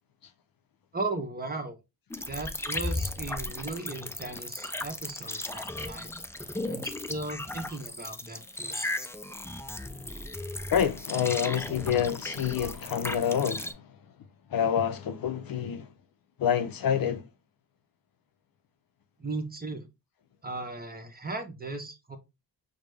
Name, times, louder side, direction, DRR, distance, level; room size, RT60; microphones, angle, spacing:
voice 1, 0.9-1.8 2.3-6.1 6.7-8.9 19.2-19.9 20.4-22.2, right 2 dB, 20° right, 1.0 m, -37 dB
sound 1, 2.1-13.7, left 2 dB, 5° left, 0.4 m, -36 dB
voice 2, 10.7-13.8 14.5-15.9 16.4-17.2, left 8 dB, 55° left, 0.6 m, -27 dB
4.8 x 2.2 x 3.3 m
cardioid pair, 60°, 42 cm